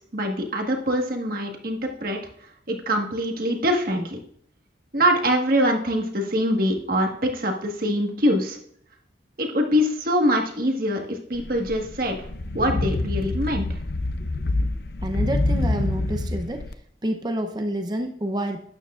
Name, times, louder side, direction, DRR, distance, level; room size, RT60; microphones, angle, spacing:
voice 1, 0.0-2.2 2.7-4.2 4.9-8.6 9.4-12.2 12.5-13.7, equal, 50° right, 3 dB, 1.6 m, -24 dB
sound 1, 11.3-16.7, left 2 dB, 60° left, 0.6 m, -26 dB
voice 2, 15.0-16.6 17.0-18.6, right 1 dB, 25° right, 5 dB, 0.7 m, -28 dB
12.0 x 9.2 x 2.5 m, 0.66 s
head